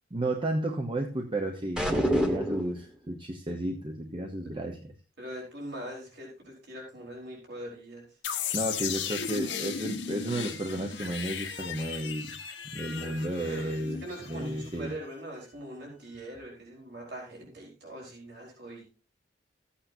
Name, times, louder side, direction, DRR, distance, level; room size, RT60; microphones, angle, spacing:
voice 1, 0.1-4.9 8.5-12.3 12.7-14.0 14.3-14.9, right 1 dB, 30° right, 3 dB, 1.0 m, -32 dB
sound 1, 1.8-2.8, equal, 5° right, 1.5 m, -26 dB
voice 2, 5.2-8.1 13.0-18.8, right 1 dB, 65° right, -3 dB, 4.4 m, -42 dB
sound 2, 8.2-15.0, left 7 dB, 80° left, 1.6 m, -36 dB
14.5 x 8.6 x 2.8 m, 0.36 s
head